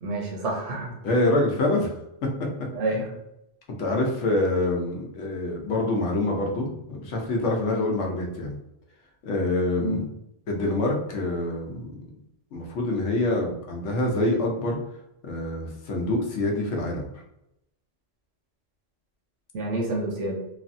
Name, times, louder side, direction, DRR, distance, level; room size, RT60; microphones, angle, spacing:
voice 1, 0.0-0.9 2.7-3.1 9.8-10.0 19.5-20.4, right 2 dB, 85° right, 0 dB, 1.1 m, -28 dB
voice 2, 1.0-1.9 2.2-2.5 3.8-8.5 9.2-10.1 10.5-12.0 12.5-14.8 15.2-17.1, left 2 dB, 80° left, 0 dB, 1.0 m, -26 dB
3.2 x 2.0 x 2.5 m, 0.84 s
omnidirectional pair, 1.2 m